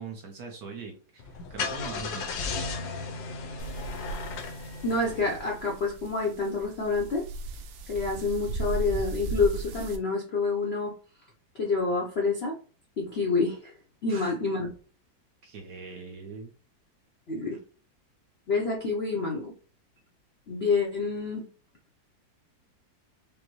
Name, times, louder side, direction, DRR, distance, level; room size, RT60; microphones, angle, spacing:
voice 1, 0.0-2.4 14.1-14.3 15.4-16.5 17.5-17.6, right 4 dB, 65° right, 3 dB, 1.1 m, -41 dB
Car / Engine starting, 1.2-5.9, left 4 dB, 80° left, 1.4 m, -35 dB
sound 1, 3.6-10.0, right 3 dB, 85° right, 1.4 m, -37 dB
voice 2, 4.8-7.2 7.9-10.9 11.5-12.5 13.0-13.7 14.0-14.7 17.3-17.6 18.5-19.5 20.5-21.4, left 3 dB, 60° left, -1 dB, 0.6 m, -28 dB
5.2 x 2.1 x 3.0 m, 0.38 s
omnidirectional pair, 2.1 m